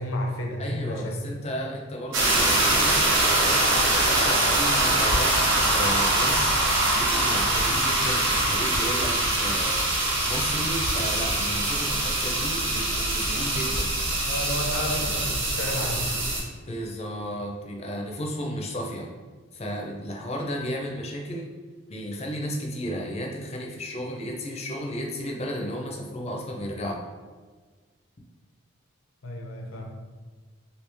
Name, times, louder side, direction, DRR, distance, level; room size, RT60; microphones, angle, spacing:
voice 1, 0.0-1.3 14.3-16.1 29.2-29.9, left 1 dB, 80° left, 2 dB, 0.6 m, -31 dB
voice 2, 0.6-3.3 4.0-6.5 6.9-9.9 10.3-13.9 16.7-19.1 19.5-21.5 21.9-27.0, equal, 30° left, 0 dB, 0.5 m, -33 dB
sound 1, 2.1-16.4, right 2 dB, 65° right, 0.8 m, -23 dB
3.1 x 2.8 x 3.4 m, 1.4 s
head